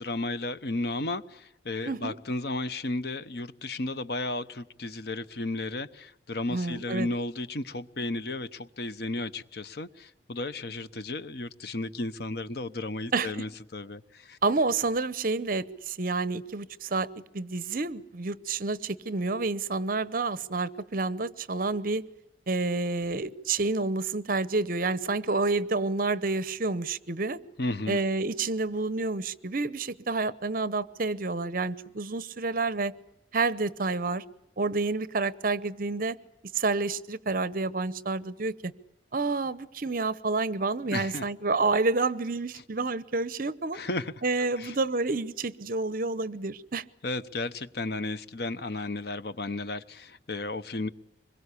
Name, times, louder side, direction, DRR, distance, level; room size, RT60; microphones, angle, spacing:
voice 1, 0.0-14.4 27.6-28.0 40.9-41.2 43.7-44.7 47.0-50.9, left 2 dB, 60° left, 13 dB, 1.0 m, -34 dB
voice 2, 1.9-2.2 6.5-7.1 13.1-13.3 14.4-17.1 17.3-22.0 22.5-27.4 27.9-32.9 33.3-34.2 34.6-36.2 36.5-38.7 39.1-43.8 44.2-46.8, right 3 dB, 50° right, 17 dB, 0.9 m, -29 dB
25.0 x 22.0 x 8.4 m, 0.81 s
head